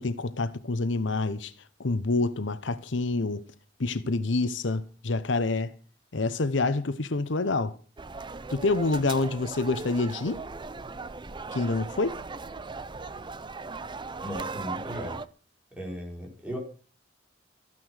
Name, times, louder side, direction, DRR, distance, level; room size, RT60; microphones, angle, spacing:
voice 1, 0.0-1.5 1.8-3.4 3.8-5.7 6.1-7.8 8.5-10.4 11.5-12.2, left 3 dB, 70° left, 0.9 m, -27 dB
sound 1, 8.0-15.3, right 4 dB, 25° right, 0.6 m, -38 dB
voice 2, 14.2-15.2 15.7-16.6, equal, 5° right, 5.4 m, -36 dB
14.5 x 9.7 x 6.4 m
head